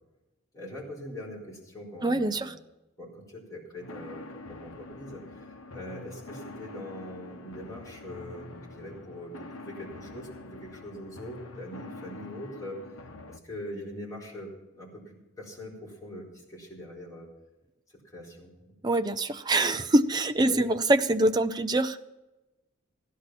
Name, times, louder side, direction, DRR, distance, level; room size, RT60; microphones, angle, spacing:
voice 1, 0.5-2.5 3.0-12.8 13.3-17.3 17.9-18.5 20.5-20.6, left 1 dB, 15° left, -5 dB, 4.3 m, -42 dB
voice 2, 2.0-2.5 18.8-22.0, right 1 dB, 20° right, 9 dB, 0.5 m, -24 dB
sound 1, 3.8-13.4, left 2 dB, 80° left, 1.0 m, -45 dB
16.0 x 11.5 x 5.8 m, 1.0 s
head